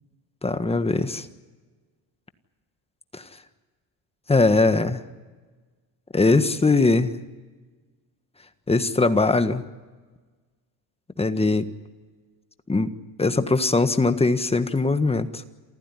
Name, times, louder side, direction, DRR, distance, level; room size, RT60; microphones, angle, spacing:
voice 1, 0.4-1.2 3.1-3.2 4.3-5.0 6.1-7.2 8.7-9.6 11.2-11.7 12.7-12.9 13.2-15.4, left 3 dB, 15° left, 10 dB, 1.5 m, -21 dB
28.0 x 15.0 x 9.9 m, 1.3 s
cardioid pair, 110°, 43 cm